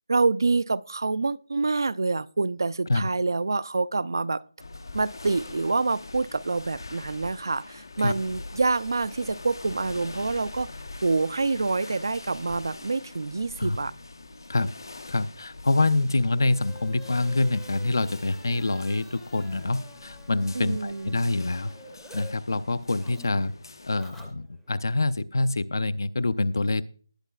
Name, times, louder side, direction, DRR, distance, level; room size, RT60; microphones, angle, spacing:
voice 1, 0.1-4.4 4.9-10.7 11.0-13.9 20.5-21.2, right 3 dB, 65° right, 0.4 m, -26 dB
sound 1, 4.6-24.0, left 3 dB, 80° left, 1.1 m, -44 dB
voice 2, 15.1-21.7 22.1-23.5 23.9-26.8, left 2 dB, 60° left, 0.6 m, -26 dB
sound 2, 15.7-22.3 22.6-24.8, left 1 dB, ahead, 0.6 m, -50 dB
19.5 x 8.9 x 2.3 m
figure-of-eight pair, 175°, 2 cm